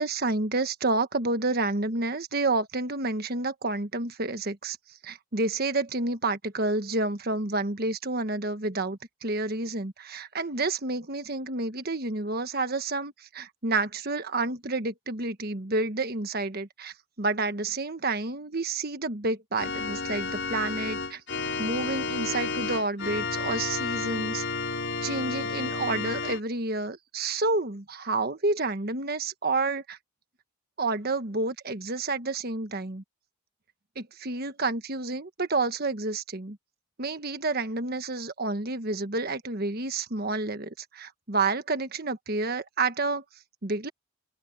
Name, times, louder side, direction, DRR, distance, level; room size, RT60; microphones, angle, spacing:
voice 1, 0.0-4.8 5.0-21.2 21.6-24.4 25.0-30.0 30.8-33.0 33.9-36.6 37.0-43.2 43.6-43.9, right 3 dB, 50° right, 1.4 m, -29 dB
Organ, 19.6-26.4, left 4 dB, 60° left, 6.6 m, -31 dB
open air
head